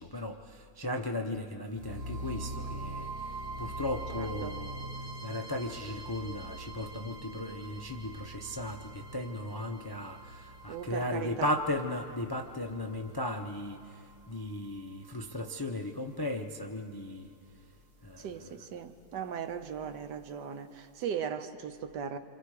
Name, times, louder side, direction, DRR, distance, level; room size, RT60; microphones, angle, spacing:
voice 1, 0.0-3.1 3.6-4.9 5.2-17.3 18.0-18.5, left 1 dB, 35° left, 0.3 m, -36 dB
sound 1, 1.7-15.7, right 2 dB, 35° right, 1.6 m, -43 dB
voice 2, 4.1-4.6 10.7-11.6 18.2-22.2, right 7 dB, 75° right, 1.5 m, -38 dB
27.5 x 26.5 x 4.9 m
omnidirectional pair, 1.9 m